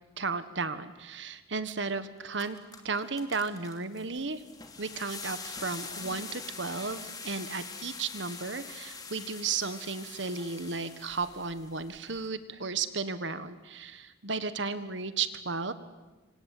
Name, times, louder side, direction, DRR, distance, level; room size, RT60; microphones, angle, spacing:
voice 1, 0.2-2.6 2.8-4.4 4.8-15.7, right 4 dB, 70° right, 12 dB, 1.5 m, -34 dB
sound 1, 1.8-1.9 2.2-12.3, left 4 dB, 20° left, 2.7 m, -44 dB
26.5 x 26.0 x 8.6 m, 1.2 s
head